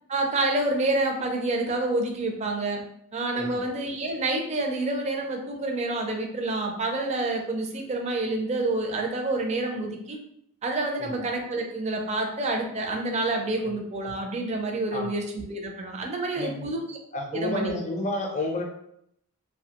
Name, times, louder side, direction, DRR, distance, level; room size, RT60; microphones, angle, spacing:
voice 1, 0.1-2.8 3.1-10.2 10.6-17.0 17.3-17.7, right 2 dB, 30° right, 2 dB, 0.4 m, -28 dB
voice 2, 16.4-16.7 17.1-18.6, left 1 dB, 35° left, 2 dB, 0.5 m, -31 dB
2.6 x 2.1 x 2.8 m, 0.73 s
head